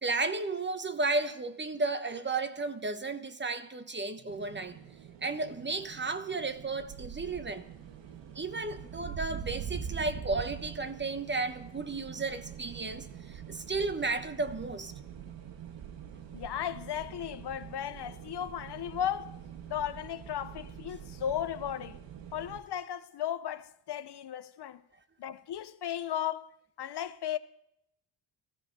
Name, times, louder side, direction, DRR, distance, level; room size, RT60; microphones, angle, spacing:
voice 1, 0.0-4.8 5.2-7.6 8.3-14.9, right 3 dB, 25° right, 1.1 m, -33 dB
sound 1, 4.3-22.6, right 8 dB, 65° right, 1.6 m, -44 dB
voice 2, 16.3-19.4 19.7-22.0 22.3-24.8 25.2-26.5 26.8-27.4, left 10 dB, 55° left, 0.8 m, -35 dB
15.0 x 14.5 x 5.4 m
cardioid pair, 100°, 47 cm